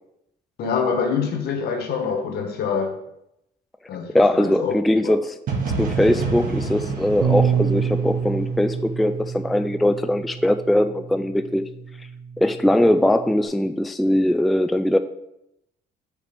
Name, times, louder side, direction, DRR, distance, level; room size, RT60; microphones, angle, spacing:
voice 1, 0.6-3.0 3.9-4.7 5.0-5.1, left 6 dB, 70° left, 1.4 m, -25 dB
voice 2, 4.1-5.3 5.8-11.6 12.4-15.0, left 1 dB, ahead, 0.3 m, -20 dB
sound 1, 5.5-9.3, right 4 dB, 55° right, 1.7 m, -28 dB
Bass guitar, 7.2-13.4, right 7 dB, 80° right, 0.7 m, -28 dB
5.2 x 5.1 x 5.3 m
cardioid pair, 110°, 17 cm